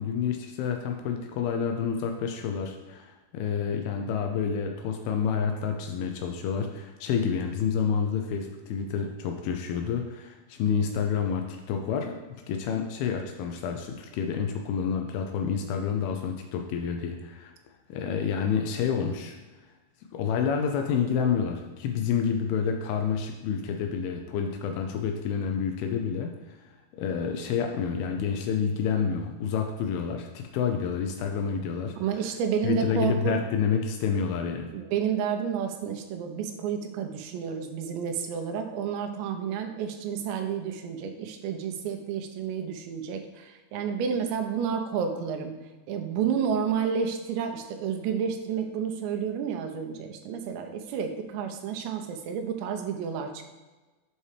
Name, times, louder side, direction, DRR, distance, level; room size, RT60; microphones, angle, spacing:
voice 1, 0.0-17.5 17.9-19.4 20.1-26.6 27.0-32.0 32.6-34.7, left 6 dB, 85° left, 4 dB, 2.2 m, -29 dB
voice 2, 32.0-33.4 34.7-45.5 45.9-53.4, right 7 dB, 90° right, 5 dB, 2.9 m, -30 dB
7.1 x 5.5 x 3.3 m, 1.2 s
omnidirectional pair, 4.9 m